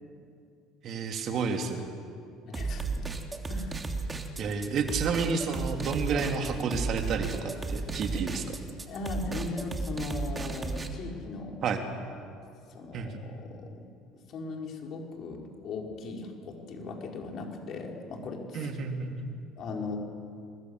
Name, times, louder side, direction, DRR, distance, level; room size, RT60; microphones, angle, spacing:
voice 1, 0.8-1.9 4.4-8.6 11.6-11.8 12.9-13.1 18.5-19.3, right 5 dB, 50° right, 4 dB, 3.1 m, -30 dB
voice 2, 2.5-3.1 3.5-3.8 6.1-6.2 8.9-11.6 12.7-13.8 14.3-18.8 19.2-19.3 19.6-20.0, left 3 dB, 55° left, 1 dB, 5.3 m, -38 dB
sound 1, 2.5-10.9, right 3 dB, 20° right, 3.0 m, -34 dB
28.0 x 21.0 x 8.3 m, 2.4 s
hypercardioid pair, 75°, 0 cm